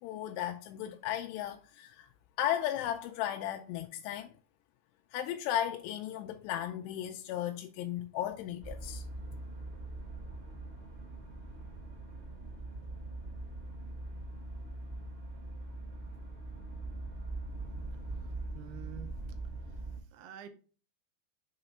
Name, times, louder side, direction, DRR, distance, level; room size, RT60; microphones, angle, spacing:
voice 1, 0.0-2.1 2.4-4.3 5.1-9.0, left 11 dB, 85° left, 2.6 m, -35 dB
sound 1, 8.6-20.0, right 2 dB, 35° right, 0.9 m, -42 dB
voice 2, 18.5-19.1 20.1-20.5, right 10 dB, 80° right, 2.7 m, -47 dB
6.6 x 3.0 x 5.4 m
omnidirectional pair, 4.9 m